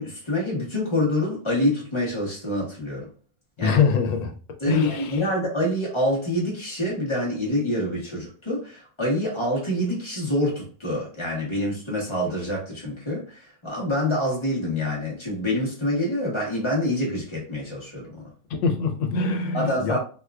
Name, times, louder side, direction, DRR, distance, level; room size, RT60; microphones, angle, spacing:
voice 1, 0.0-3.1 3.6-3.8 4.6-18.2 19.5-20.0, left 1 dB, 25° left, 0.6 m, -26 dB
voice 2, 3.6-4.4 4.7-5.2 18.5-20.0, left 5 dB, 85° left, 1.3 m, -24 dB
4.3 x 2.4 x 2.3 m
omnidirectional pair, 2.0 m